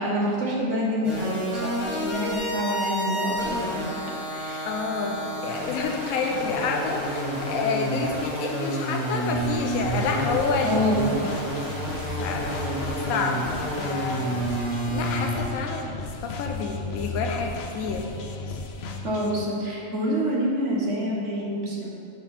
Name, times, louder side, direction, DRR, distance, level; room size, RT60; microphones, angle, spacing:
voice 1, 0.0-4.0 4.3-4.7 6.3-6.4 10.6-11.0 19.0-21.9, equal, 55° right, -4 dB, 1.7 m, -27 dB
sound 1, 1.0-15.4, right 1 dB, 20° left, 1.6 m, -30 dB
voice 2, 4.7-11.0 12.1-12.5 13.1-13.4 13.8-14.4 14.9-18.1 18.5-18.6, left 4 dB, 85° left, 2 dB, 1.1 m, -29 dB
sound 2, 9.3-19.4, left 3 dB, 60° left, 0.7 m, -35 dB
11.5 x 4.2 x 4.3 m, 2.5 s
omnidirectional pair, 1.5 m